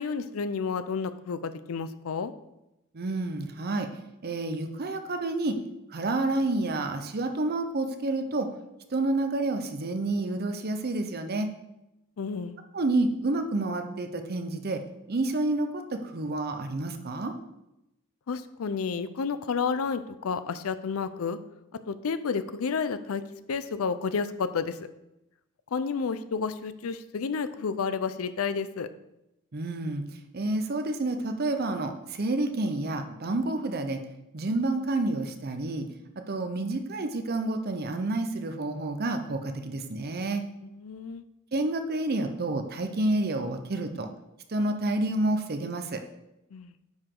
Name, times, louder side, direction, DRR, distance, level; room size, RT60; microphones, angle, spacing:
voice 1, 0.0-2.3 12.2-12.6 18.3-21.4 21.9-23.2 23.5-24.8 25.7-28.9 40.6-41.2 46.5-46.7, left 5 dB, 90° left, 12 dB, 0.5 m, -31 dB
voice 2, 2.9-3.9 4.2-5.6 5.9-8.5 8.9-11.5 12.7-14.8 15.1-17.4 29.5-30.0 30.3-34.0 34.3-35.9 36.3-40.4 41.5-44.1 44.5-46.0, right 2 dB, 50° right, 7 dB, 0.7 m, -29 dB
9.5 x 4.8 x 3.8 m, 0.90 s
head